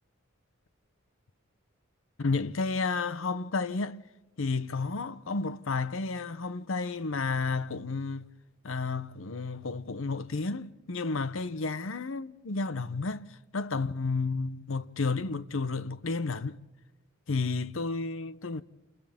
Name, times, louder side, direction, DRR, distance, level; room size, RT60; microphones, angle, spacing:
voice 1, 2.2-4.0 4.4-8.3 8.6-13.3 13.5-16.6 17.3-18.6, left 4 dB, 70° left, 0.7 m, -31 dB
29.5 x 28.5 x 3.6 m
head